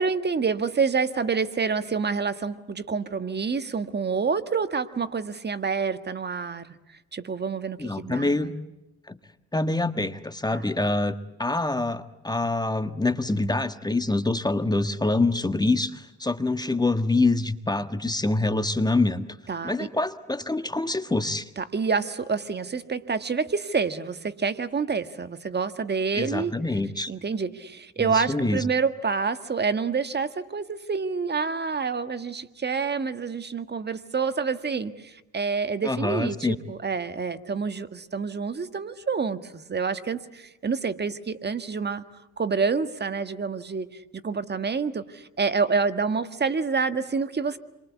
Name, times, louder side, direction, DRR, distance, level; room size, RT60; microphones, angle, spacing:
voice 1, 0.0-6.7 7.1-8.6 10.5-10.7 19.5-19.9 21.6-26.5 27.1-42.0 42.4-44.0 44.2-47.6, right 5 dB, 35° right, 11 dB, 1.7 m, -28 dB
voice 2, 7.8-8.5 9.1-9.2 9.5-11.1 11.4-19.3 19.6-21.5 26.1-27.1 28.0-28.6 35.8-36.6, left 2 dB, 15° left, 10 dB, 1.5 m, -25 dB
29.5 x 24.0 x 8.3 m, 0.98 s
cardioid pair, 90°, 30 cm